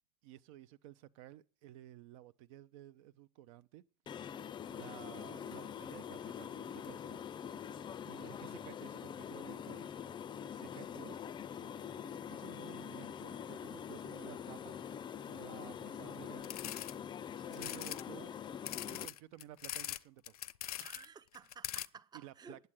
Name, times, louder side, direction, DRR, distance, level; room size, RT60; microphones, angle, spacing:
voice 1, 0.2-3.8 4.7-7.2 8.0-10.0 10.5-11.2 11.5-11.7 12.3-14.8 15.3-17.0 17.5-18.4 18.9-20.4 22.1-22.7, right 13 dB, 60° right, 0.6 m, -54 dB
sound 1, 4.1-19.1, left 8 dB, 25° left, 0.5 m, -44 dB
voice 2, 8.3-8.6 17.5-17.8 20.8-22.7, right 6 dB, 20° right, 0.7 m, -55 dB
sound 2, 16.4-16.9 17.5-18.0 18.6-20.0 20.3-21.0 21.3-21.9, left 13 dB, 75° left, 0.5 m, -42 dB
9.5 x 7.9 x 8.8 m
figure-of-eight pair, 80°, 19 cm